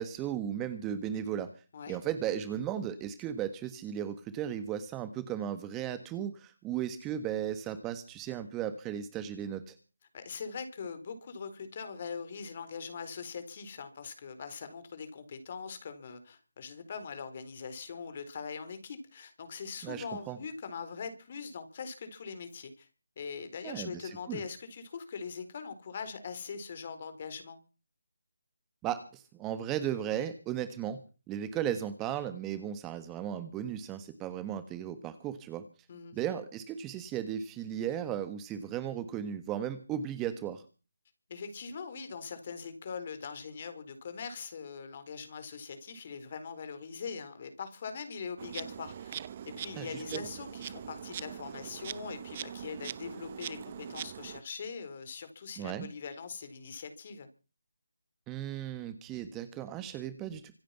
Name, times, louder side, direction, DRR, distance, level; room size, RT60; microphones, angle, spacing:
voice 1, 0.0-1.5 1.9-9.7 19.8-20.4 23.6-24.4 28.8-31.0 31.3-35.7 36.1-40.6 49.7-50.3 55.6-55.9 58.3-60.5, right 10 dB, 15° right, 11 dB, 1.4 m, -36 dB
voice 2, 10.1-22.9 23.2-27.6 35.9-36.2 41.3-49.2 49.5-57.3, left 5 dB, 40° left, 10 dB, 4.2 m, -42 dB
Insect, 48.4-54.4, right 9 dB, 30° right, 0.9 m, -42 dB
25.5 x 9.1 x 5.9 m, 0.35 s
figure-of-eight pair, 155°, 0 cm